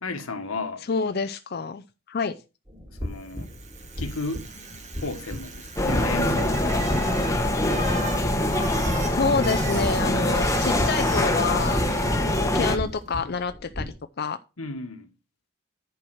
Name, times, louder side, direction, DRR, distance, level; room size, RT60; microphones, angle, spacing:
voice 1, 0.0-0.8 3.0-3.5 4.0-4.4 5.0-7.6 14.6-15.1, left 3 dB, 85° left, 1.5 m, -34 dB
voice 2, 0.9-2.3 9.1-14.4, left 5 dB, 50° left, 0.5 m, -28 dB
sound 1, 2.7-13.9, left 1 dB, 20° right, 2.7 m, -37 dB
Bicycle, 3.2-12.6, right 3 dB, 35° right, 2.0 m, -39 dB
sound 2, 5.8-12.8, left 1 dB, 15° left, 1.0 m, -24 dB
10.5 x 4.7 x 6.3 m
head